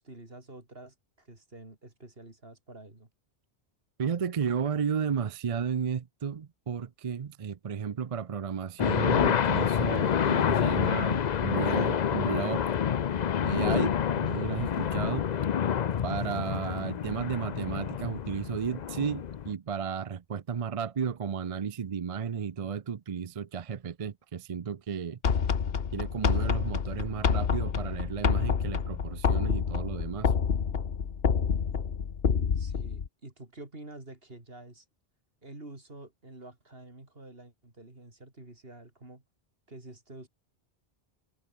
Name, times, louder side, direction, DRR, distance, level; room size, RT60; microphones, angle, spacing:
voice 1, 0.0-3.1 32.5-34.9 35.4-39.2 39.7-40.3, right 2 dB, 65° right, 4.5 m, -48 dB
voice 2, 4.0-12.6 13.4-15.3 16.0-25.2 25.9-30.3, right 7 dB, 40° right, 0.6 m, -33 dB
sound 1, 8.8-19.5, left 8 dB, 50° left, 0.7 m, -28 dB
sound 2, 25.2-33.1, left 6 dB, 70° left, 1.3 m, -28 dB
omnidirectional pair, 1.0 m